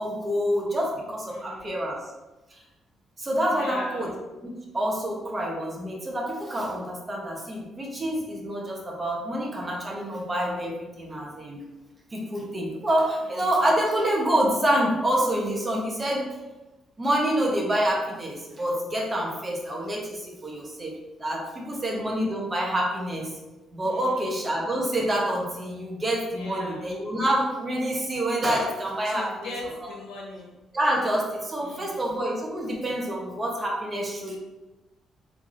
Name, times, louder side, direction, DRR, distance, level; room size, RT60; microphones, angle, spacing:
voice 1, 0.0-2.1 3.2-11.6 12.1-16.3 17.0-20.9 21.2-23.3 23.7-29.5 30.7-34.4, right 1 dB, 30° right, -2 dB, 0.9 m, -27 dB
voice 2, 1.3-1.8 3.5-4.2 13.2-13.7 21.7-21.8 23.8-24.5 26.3-26.9 29.0-30.5 31.6-32.2, left 2 dB, 85° left, -3 dB, 0.8 m, -40 dB
3.5 x 3.1 x 2.5 m, 1.1 s
cardioid pair, 90°, 0 cm